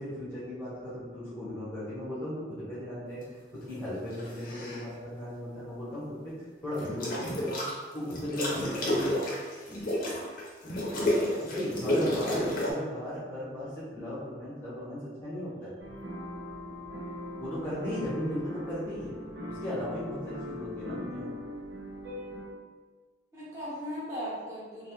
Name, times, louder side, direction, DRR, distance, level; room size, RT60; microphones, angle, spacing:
voice 1, 0.0-6.3 6.6-7.6 7.9-9.3 11.4-15.7 17.4-19.1 19.5-21.3, equal, 10° left, -10 dB, 0.7 m, -36 dB
sound 1, 4.1-4.8 6.7-7.7 8.1-12.7, left 1 dB, 50° left, 0.6 m, -31 dB
voice 2, 12.0-12.5 23.3-24.9, equal, 15° right, -9 dB, 0.8 m, -38 dB
sound 2, 15.8-22.4, left 1 dB, 85° right, 0.6 m, -40 dB
2.5 x 2.3 x 2.8 m, 1.5 s
head